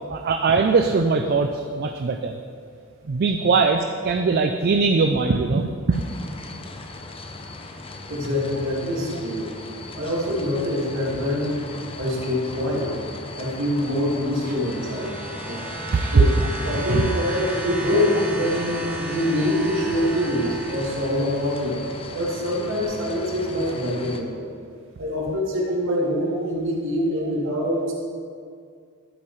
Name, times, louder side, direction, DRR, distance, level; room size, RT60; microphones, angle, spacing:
voice 1, 0.1-2.4 3.1-6.0 15.7-16.5 16.7-17.2 18.5-18.6 27.2-27.3, right 4 dB, 50° right, 5 dB, 0.4 m, -21 dB
sound 1, 5.9-24.2, left 2 dB, 25° left, 0.6 m, -38 dB
voice 2, 8.1-9.5 10.0-11.6 12.0-13.0 13.4-15.1 15.5-15.6 16.1-16.3 16.6-21.8 22.1-24.5 25.0-27.9, left 1 dB, 65° right, -4 dB, 2.2 m, -25 dB
sound 2, 14.0-21.8 22.8-22.9, right 2 dB, 5° right, 1.2 m, -34 dB
12.0 x 8.8 x 3.2 m, 2.2 s
head